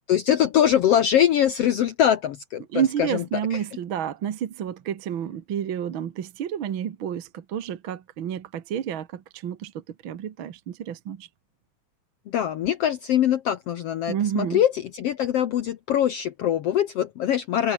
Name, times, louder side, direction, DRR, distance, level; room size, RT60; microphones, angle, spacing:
voice 1, 0.1-3.2 3.5-3.6 12.3-17.7, left 10 dB, 70° left, 1.5 m, -23 dB
voice 2, 2.7-11.3 14.1-14.6, right 9 dB, 55° right, 1.6 m, -30 dB
omnidirectional pair, 3.8 m